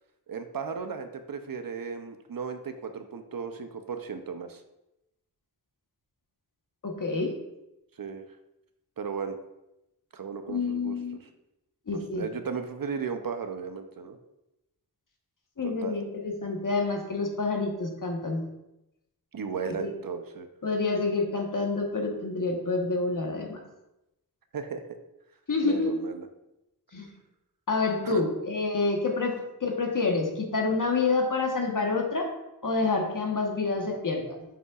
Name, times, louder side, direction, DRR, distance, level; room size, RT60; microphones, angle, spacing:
voice 1, 0.3-4.6 8.0-8.2 9.0-9.4 10.1-11.0 11.9-14.2 15.6-16.0 19.3-20.5 24.5-24.8 25.6-26.3 28.0-28.2, right 6 dB, 60° right, 8 dB, 0.6 m, -35 dB
voice 2, 6.8-7.3 10.5-11.2 11.9-12.2 15.6-18.4 19.8-19.9 20.6-23.6 25.5-26.0 26.9-27.1 27.7-29.3 29.6-32.3 32.6-34.4, left 3 dB, 55° left, 1 dB, 1.2 m, -28 dB
7.7 x 5.4 x 2.4 m, 0.91 s
wide cardioid pair, 65°, 38 cm